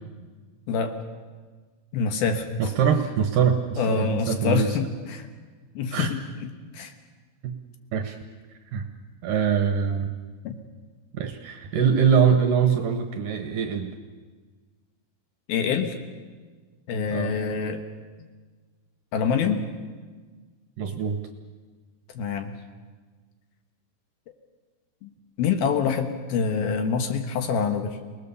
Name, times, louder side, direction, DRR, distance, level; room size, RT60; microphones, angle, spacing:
voice 1, 0.7-1.0 1.9-2.5 3.8-5.3 5.8-6.2 6.7-6.9 10.4-10.5 15.5-16.0 16.9-17.8 19.1-19.6 22.1-22.5 25.0-25.1 25.4-28.0, left 6 dB, 65° left, 6 dB, 2.9 m, -26 dB
voice 2, 2.6-4.7 5.9-6.1 7.4-7.5 7.9-8.2 8.7-8.9 9.2-10.1 11.1-14.0 17.1-17.4 20.8-21.2, right 7 dB, 65° right, 6 dB, 2.3 m, -23 dB
29.0 x 19.5 x 6.9 m, 1.4 s
omnidirectional pair, 5.0 m